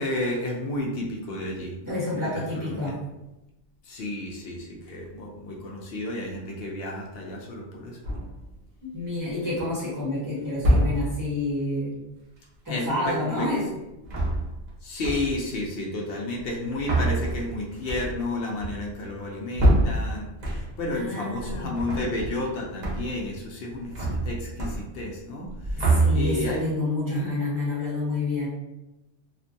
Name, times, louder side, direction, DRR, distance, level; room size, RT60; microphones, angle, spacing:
voice 1, 0.0-3.0 3.8-8.0 12.7-13.6 14.8-26.7 27.1-27.3, left 1 dB, 60° left, -1 dB, 0.6 m, -32 dB
voice 2, 1.9-2.9 8.8-12.0 12.6-13.6 20.9-21.7 25.8-28.5, left 2 dB, 15° right, -8 dB, 0.9 m, -29 dB
sound 1, 8.0-8.5 9.3-9.8 10.6-11.3 13.9-14.8 15.0-15.6 16.4-21.0 21.3-22.5 22.8-23.3 23.6-25.2 25.5-26.6, right 1 dB, 50° right, 0.5 m, -26 dB
2.5 x 2.1 x 2.6 m, 0.95 s
omnidirectional pair, 1.3 m